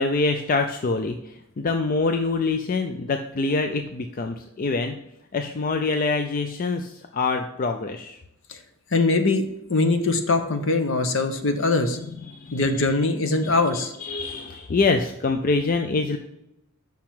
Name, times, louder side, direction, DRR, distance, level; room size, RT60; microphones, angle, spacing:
voice 1, 0.0-5.0 5.3-8.2 12.3-12.6 14.0-16.2, left 3 dB, 40° left, 6 dB, 0.4 m, -25 dB
voice 2, 8.9-12.0 12.5-13.9, left 3 dB, 60° left, 7 dB, 0.9 m, -22 dB
7.5 x 5.8 x 3.6 m, 0.85 s
head